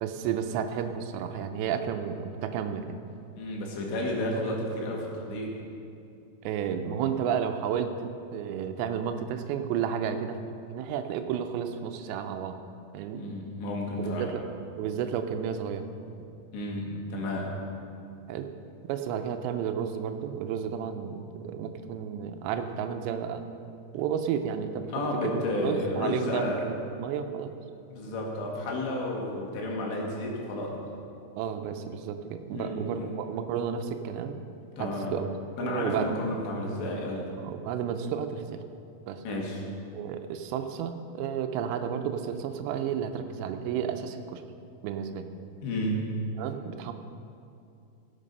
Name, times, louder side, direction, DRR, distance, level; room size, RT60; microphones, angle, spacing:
voice 1, 0.0-2.8 6.4-10.4 10.7-12.6 12.9-13.2 14.0-14.4 14.8-15.9 18.3-18.5 18.8-23.4 23.9-24.9 25.2-27.5 31.4-34.4 34.8-35.2 35.6-36.1 37.4-38.6 39.1-39.2 39.9-44.4 44.8-45.3 46.4-46.9, right 8 dB, 90° right, 7 dB, 2.9 m, -32 dB
voice 2, 3.4-5.5 13.1-14.3 16.5-17.5 24.8-26.6 27.9-30.7 32.5-33.1 34.8-35.1 35.6-37.3 39.3-39.7 45.6-46.1, left 1 dB, 85° left, -1 dB, 4.2 m, -32 dB
16.5 x 8.4 x 5.5 m, 2.5 s
omnidirectional pair, 4.9 m